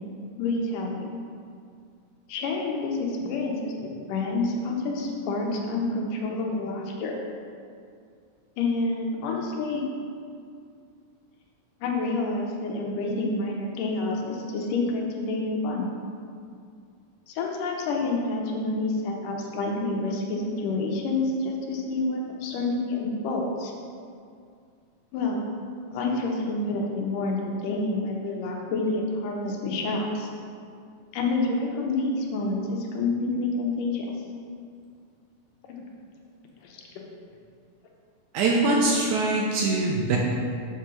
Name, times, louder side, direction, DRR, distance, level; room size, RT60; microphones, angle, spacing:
voice 1, 0.4-1.0 2.3-7.1 8.6-9.8 11.8-15.9 17.3-23.7 25.1-25.4 25.9-30.3 31.1-34.1 36.6-36.8, left 3 dB, 80° left, -1 dB, 2.5 m, -28 dB
voice 2, 38.3-40.2, right 2 dB, 75° right, -2 dB, 2.0 m, -23 dB
7.2 x 4.6 x 6.4 m, 2.3 s
omnidirectional pair, 3.8 m